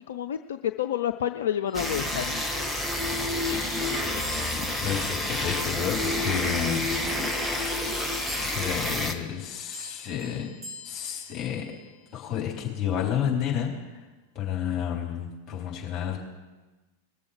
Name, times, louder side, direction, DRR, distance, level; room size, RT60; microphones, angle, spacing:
voice 1, 0.0-2.4 3.5-4.4, left 10 dB, 60° left, 8 dB, 0.4 m, -30 dB
sound 1, 1.7-9.1, left 1 dB, ahead, 1.2 m, -29 dB
sound 2, 4.2-6.9 7.9-12.4, left 2 dB, 20° right, 4.5 m, -46 dB
voice 2, 4.8-6.9 8.4-10.5 10.8-11.6 12.1-13.7 14.3-16.2, left 9 dB, 25° left, -2 dB, 4.1 m, -30 dB
20.5 x 6.9 x 5.0 m, 1.2 s
figure-of-eight pair, 90°, 0 cm